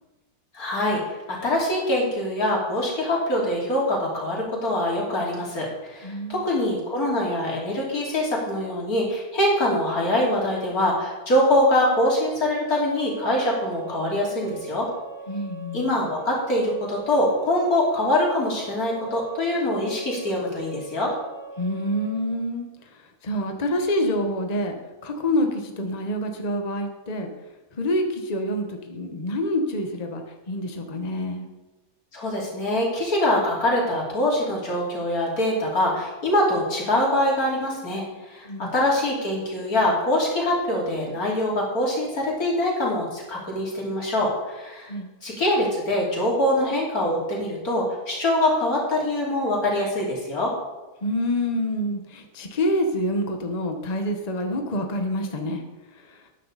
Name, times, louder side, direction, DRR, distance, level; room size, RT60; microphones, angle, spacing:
voice 1, 0.5-1.0 1.3-14.9 15.7-21.1 32.1-44.9 45.2-50.5, left 1 dB, 90° left, -3 dB, 3.5 m, -24 dB
voice 2, 6.0-6.4 15.3-15.9 21.6-22.7 23.2-24.8 25.0-27.3 27.8-30.2 30.5-31.5 38.5-38.7 44.9-45.1 51.0-55.6, left 1 dB, 30° left, 4 dB, 1.1 m, -27 dB
sound 1, 8.1-8.5 12.9-22.2, right 4 dB, 70° left, 3.6 m, -41 dB
12.0 x 9.8 x 4.0 m, 1.1 s
omnidirectional pair, 1.5 m